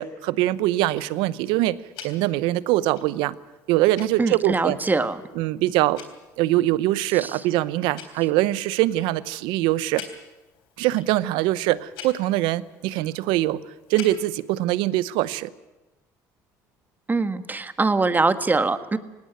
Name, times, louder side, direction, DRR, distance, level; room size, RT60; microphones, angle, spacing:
voice 1, 0.0-1.8 2.0-3.4 3.7-4.8 5.4-6.0 6.4-10.0 10.8-13.6 13.9-15.5, right 16 dB, 75° right, 18 dB, 0.8 m, -23 dB
Tick-tock, 0.5-14.6, left 8 dB, 75° left, 3.6 m, -48 dB
voice 2, 4.2-5.2 7.2-7.3 17.1-19.0, right 3 dB, 20° right, 11 dB, 1.5 m, -23 dB
18.5 x 18.0 x 9.3 m, 1.1 s
supercardioid pair, 75°, 8 cm